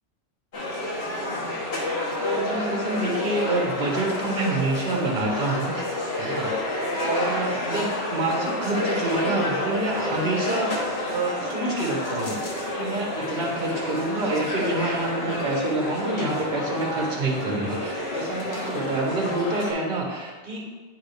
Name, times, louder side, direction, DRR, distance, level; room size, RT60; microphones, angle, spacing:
sound 1, 0.5-19.7, left 1 dB, 70° left, 1.4 m, -29 dB
voice 1, 2.0-5.8 6.1-6.6 7.0-20.6, right 2 dB, 50° right, -2 dB, 1.5 m, -28 dB
9.2 x 3.6 x 3.5 m, 1.4 s
omnidirectional pair, 1.1 m